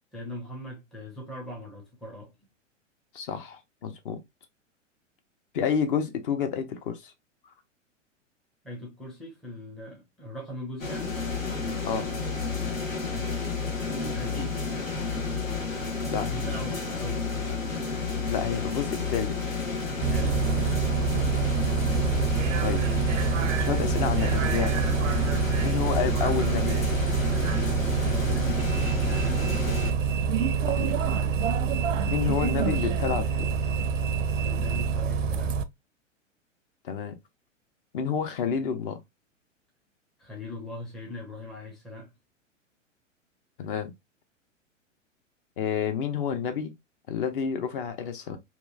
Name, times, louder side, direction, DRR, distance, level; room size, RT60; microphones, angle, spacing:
voice 1, 0.1-2.3 8.6-11.2 11.5-11.8 13.8-14.6 16.2-17.5 19.9-20.7 25.5-25.8 28.1-29.6 34.4-35.5 40.2-42.1, left 1 dB, ahead, 0.4 m, -40 dB
voice 2, 3.1-4.2 5.5-7.1 11.9-12.1 16.1-16.3 18.3-19.4 21.6-21.7 22.6-22.9 23.6-24.8 25.6-27.0 30.7-31.2 32.1-33.5 36.8-37.1 37.9-39.0 43.6-43.9 45.6-46.7 47.1-48.4, left 7 dB, 45° left, 0.6 m, -29 dB
sound 1, 10.8-29.9, left 5 dB, 85° left, 1.0 m, -31 dB
Bus, 20.0-35.6, right 6 dB, 75° right, 0.5 m, -26 dB
2.9 x 2.3 x 2.2 m
figure-of-eight pair, 105°, 38 cm